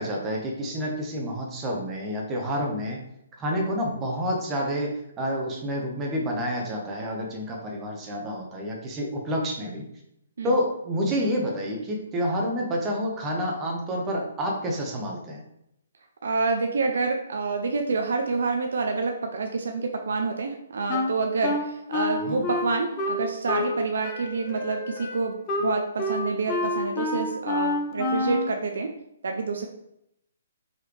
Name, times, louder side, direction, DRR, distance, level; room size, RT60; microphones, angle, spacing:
voice 1, 0.0-3.0 3.4-9.9 10.4-15.4 22.3-22.4, equal, 15° right, 0 dB, 0.9 m, -29 dB
voice 2, 16.2-28.9 29.2-29.7, right 4 dB, 60° right, 4 dB, 0.4 m, -28 dB
Wind instrument woodwind instrument, 20.9-23.8 24.0-28.5, left 2 dB, 25° left, 0.6 m, -28 dB
4.8 x 3.2 x 3.3 m, 0.79 s
figure-of-eight pair, 130°, 0 cm